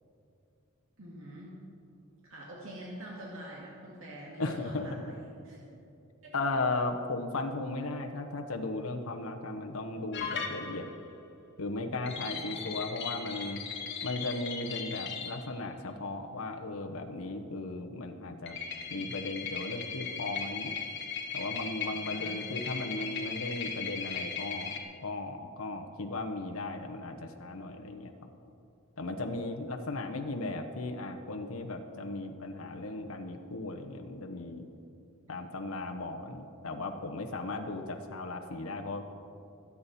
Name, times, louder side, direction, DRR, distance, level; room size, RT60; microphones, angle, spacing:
voice 1, 1.0-1.5 2.2-5.6 6.2-6.3 10.6-10.7 12.2-12.7 21.9-22.4, right 1 dB, 70° right, -4 dB, 2.2 m, -45 dB
voice 2, 4.4-4.9 6.3-10.9 11.6-13.6 14.0-18.6 18.9-20.8 21.3-28.1 29.0-34.7 35.3-39.0, left 2 dB, 85° left, 4 dB, 1.0 m, -36 dB
sound 1, 10.1-11.0 12.1-15.4 18.5-24.8, left 6 dB, 55° left, 1.4 m, -38 dB
22.5 x 8.6 x 4.2 m, 2.7 s
head